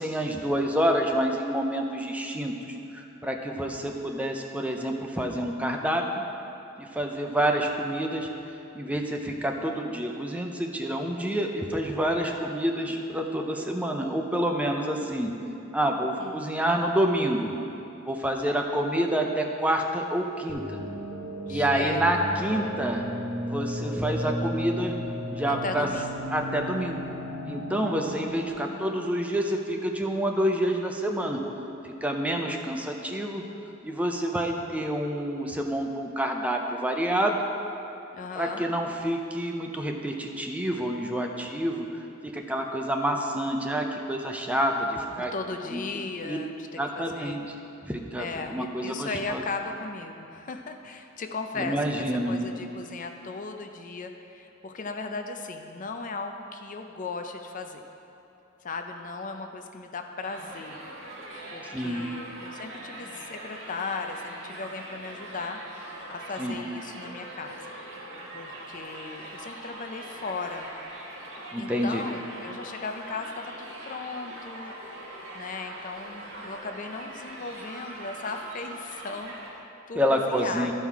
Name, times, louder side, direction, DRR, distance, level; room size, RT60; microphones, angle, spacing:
voice 1, 0.0-6.2 6.8-8.3 8.7-15.3 15.7-17.5 18.0-20.6 21.5-23.0 23.5-25.0 25.3-25.9 26.3-27.0 27.5-31.4 31.8-33.4 33.8-37.4 38.4-41.9 42.2-45.3 45.7-45.8 46.3-46.4 46.8-47.4 47.8-48.3 48.5-49.4 51.6-52.4 61.7-62.0 66.4-66.6 71.5-72.0 79.9-80.7, right 1 dB, 5° right, 2 dB, 0.6 m, -28 dB
voice 2, 16.2-16.5 21.5-22.1 25.5-26.2 28.4-29.2 38.1-38.7 45.2-47.4 48.2-57.8 58.6-60.8 61.5-65.6 66.1-67.7 68.3-70.7 71.6-74.7 75.1-80.7, left 4 dB, 40° left, 5 dB, 0.5 m, -37 dB
sound 1, 20.5-28.5, equal, 35° right, 1.1 m, -34 dB
Crowd, 60.2-79.5, right 1 dB, 65° right, 1.7 m, -42 dB
13.0 x 5.6 x 4.7 m, 2.8 s
head